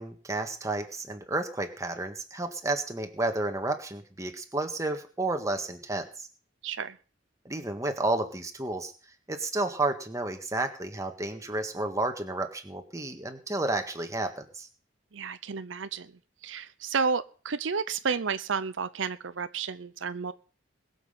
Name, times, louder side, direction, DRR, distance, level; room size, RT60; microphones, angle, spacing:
voice 1, 0.0-6.3 7.4-8.9 9.3-14.7, right 2 dB, 15° right, 5 dB, 1.7 m, -31 dB
voice 2, 6.6-7.0 15.1-16.1 16.4-20.3, right 5 dB, 80° right, 13 dB, 0.7 m, -31 dB
21.0 x 7.3 x 5.8 m, 0.39 s
head